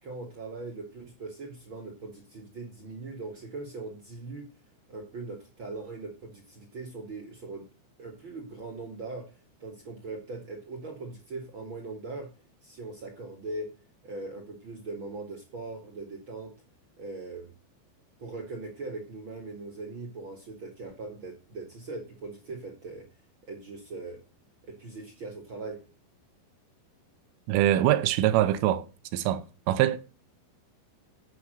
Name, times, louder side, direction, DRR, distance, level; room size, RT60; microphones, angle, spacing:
voice 1, 0.0-4.5 4.9-7.6 8.0-9.3 9.6-12.3 12.6-13.7 14.0-16.5 17.0-17.5 18.2-23.0 23.5-24.2 24.7-25.8, right 3 dB, 70° right, 1.1 m, -40 dB
voice 2, 27.5-28.8 29.1-30.0, right 13 dB, 90° right, 3.3 m, -24 dB
8.6 x 8.0 x 6.5 m
omnidirectional pair, 5.8 m